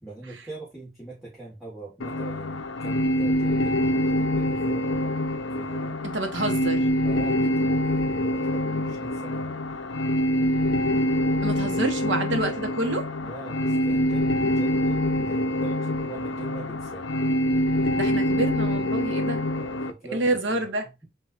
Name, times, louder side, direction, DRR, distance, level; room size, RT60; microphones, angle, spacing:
voice 1, 0.0-5.2 5.5-6.0 7.0-9.6 13.2-17.1 19.5-20.6, right 2 dB, ahead, 1.3 m, -42 dB
sound 1, 2.0-19.9, left 1 dB, 70° left, 0.5 m, -25 dB
voice 2, 6.0-6.9 11.4-13.1 17.9-19.5 20.1-20.9, right 1 dB, 70° right, 1.0 m, -28 dB
7.2 x 2.5 x 2.4 m
head